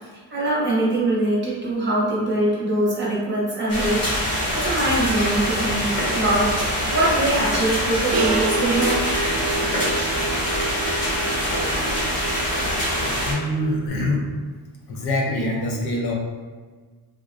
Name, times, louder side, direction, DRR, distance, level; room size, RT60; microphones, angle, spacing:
voice 1, 0.3-4.0 4.5-5.9 6.1-9.0, right 1 dB, 25° right, -6 dB, 0.7 m, -22 dB
sound 1, 3.7-13.3, equal, 90° left, 1.4 m, -24 dB
sound 2, 8.1-13.9, right 4 dB, 60° right, 0.5 m, -29 dB
voice 2, 13.0-14.2 14.9-16.1, left 1 dB, 70° left, -1 dB, 0.6 m, -25 dB
3.5 x 2.1 x 2.4 m, 1.4 s
wide cardioid pair, 170°, 42 cm